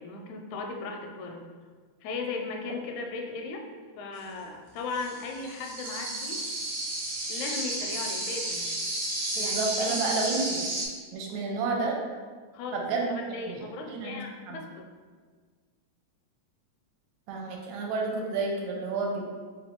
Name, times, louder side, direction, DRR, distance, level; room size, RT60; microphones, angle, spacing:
voice 1, 0.0-1.5 2.0-3.6 4.0-6.5 7.3-8.7 9.3-10.0 12.5-14.8, left 3 dB, 85° left, 2 dB, 1.9 m, -37 dB
sound 1, 4.9-10.9, right 1 dB, 65° right, 1.5 m, -32 dB
voice 2, 9.3-10.7 11.1-12.0 12.7-13.1 13.5-13.6 13.9-14.2 14.5-14.6 17.3-19.2, right 3 dB, 85° right, 0 dB, 1.9 m, -30 dB
4.5 x 2.5 x 3.5 m, 1.5 s
omnidirectional pair, 3.3 m